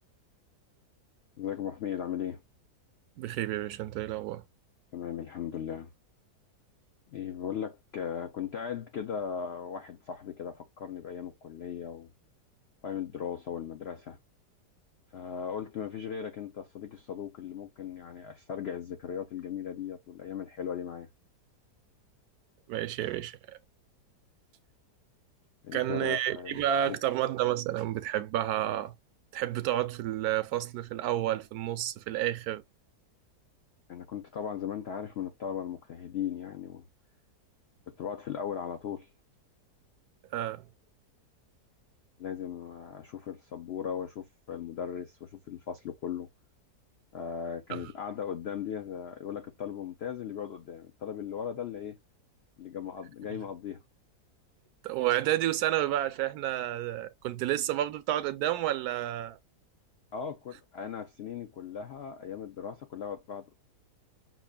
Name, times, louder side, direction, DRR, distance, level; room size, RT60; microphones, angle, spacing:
voice 1, 1.4-2.4 4.9-5.9 7.1-12.1 12.8-14.2 15.1-21.1 25.6-26.6 33.9-36.8 37.9-39.1 42.2-46.3 47.1-52.0 52.6-53.8 60.1-63.5, left 8 dB, 70° left, 0.6 m, -37 dB
voice 2, 3.2-4.4 22.7-23.6 25.7-28.9 29.3-32.6 40.3-40.7 47.7-47.9 54.8-59.4, right 12 dB, 75° right, 1.1 m, -30 dB
5.9 x 2.4 x 2.2 m
omnidirectional pair, 1.7 m